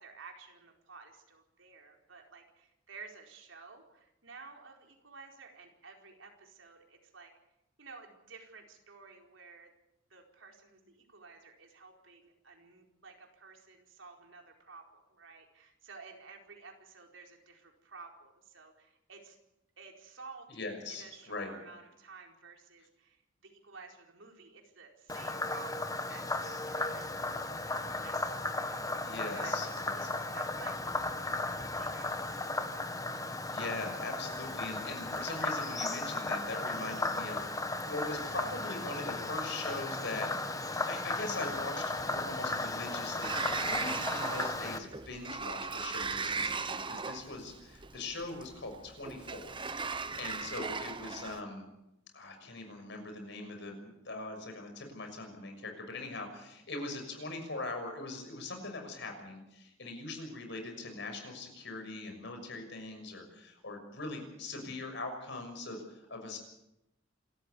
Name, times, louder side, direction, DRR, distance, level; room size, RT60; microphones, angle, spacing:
voice 1, 0.0-7.3 7.8-9.7 10.1-19.4 19.8-20.6 20.9-31.3 31.8-32.9 50.0-50.2, right 4 dB, 75° right, 2 dB, 4.6 m, -53 dB
voice 2, 20.5-21.5 29.0-30.1 33.5-49.6 49.9-51.7 52.1-66.4, left 2 dB, 65° left, 5 dB, 6.4 m, -41 dB
Frog, 25.1-44.8, left 2 dB, 20° left, 1.7 m, -35 dB
Sliding door, 43.2-51.4, right 4 dB, 25° right, 1.2 m, -37 dB
27.5 x 14.0 x 8.5 m, 0.89 s
head